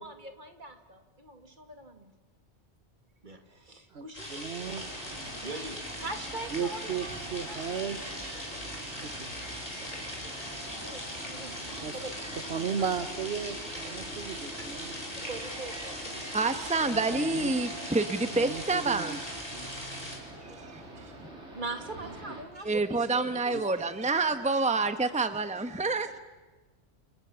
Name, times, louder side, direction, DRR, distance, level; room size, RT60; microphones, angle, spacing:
voice 1, 0.0-2.1 3.2-4.8 5.4-7.6 10.6-12.9 14.6-14.7 15.2-16.5 21.5-23.8, right 2 dB, 45° right, 6 dB, 2.5 m, -43 dB
voice 2, 3.9-4.8 6.5-8.4 9.0-9.3 11.8-12.0 12.5-15.0 16.8-17.5 18.3-19.2 19.5-19.7 23.5-23.7, right 6 dB, 65° right, 9 dB, 1.4 m, -36 dB
sound 1, 4.1-20.2, left 1 dB, 35° left, 6.1 m, -40 dB
sound 2, 4.6-22.4, right 2 dB, 80° right, 4.8 m, -45 dB
voice 3, 16.3-19.2 20.7-20.8 22.6-26.1, right 3 dB, 5° right, 9 dB, 1.1 m, -28 dB
29.5 x 28.5 x 7.1 m, 1.2 s
omnidirectional pair, 1.2 m